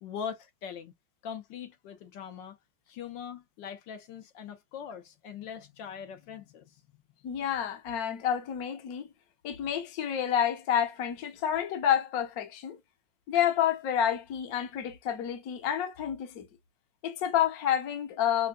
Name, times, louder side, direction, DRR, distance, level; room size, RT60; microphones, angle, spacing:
voice 1, 0.0-0.9 1.2-2.6 2.9-6.8, left 7 dB, 75° left, 1.5 m, -41 dB
voice 2, 7.2-9.1 9.4-12.8 13.3-16.5 17.0-18.5, left 9 dB, 60° left, 1.2 m, -29 dB
5.4 x 2.2 x 2.3 m
omnidirectional pair, 2.0 m